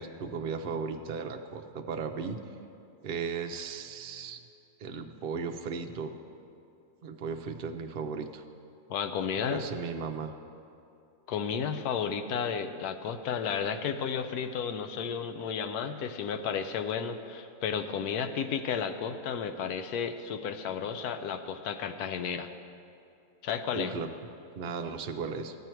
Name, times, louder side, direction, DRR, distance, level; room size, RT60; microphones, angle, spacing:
voice 1, 0.0-2.4 3.0-4.4 4.8-6.2 7.0-8.4 9.5-10.3 23.7-24.1 24.6-25.6, right 5 dB, 70° right, 6 dB, 0.5 m, -36 dB
voice 2, 8.9-9.6 11.3-22.5 23.4-23.9, left 7 dB, 85° left, 9 dB, 1.1 m, -32 dB
12.5 x 9.1 x 4.5 m, 2.6 s
omnidirectional pair, 1.6 m